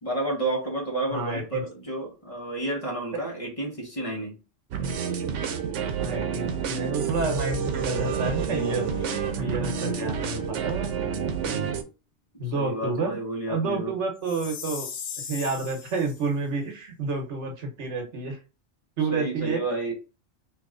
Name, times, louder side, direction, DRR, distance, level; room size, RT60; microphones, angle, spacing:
voice 1, 0.0-4.4 12.5-13.9 19.1-19.9, right 2 dB, 30° left, -2 dB, 1.2 m, -30 dB
voice 2, 1.1-1.6 5.8-11.8 12.4-13.2 13.5-14.9 15.3-18.4 19.0-19.6, right 3 dB, 70° right, 4 dB, 1.2 m, -30 dB
sound 1, 4.7-11.8, right 7 dB, 90° right, 0.9 m, -29 dB
Bowed string instrument, 6.6-11.3, left 4 dB, 90° left, 1.2 m, -41 dB
Chime, 14.2-16.2, left 7 dB, 65° left, 0.9 m, -38 dB
3.0 x 3.0 x 3.7 m, 0.32 s
omnidirectional pair, 1.2 m